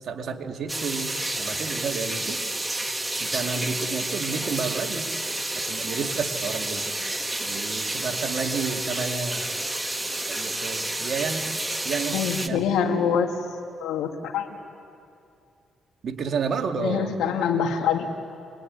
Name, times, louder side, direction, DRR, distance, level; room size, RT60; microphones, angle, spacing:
voice 1, 0.0-2.4 2.7-2.8 3.2-5.1 5.6-6.9 7.5-9.4 10.3-11.5 11.8-12.7 16.0-17.2, right 5 dB, 60° right, 3 dB, 2.2 m, -31 dB
sound 1, 0.7-12.5, right 2 dB, 10° right, 1.5 m, -30 dB
voice 2, 12.1-13.3 13.8-14.6 16.8-18.1, left 7 dB, 85° left, 5 dB, 2.2 m, -25 dB
25.0 x 21.0 x 9.7 m, 2.5 s
cardioid pair, 90°, 0 cm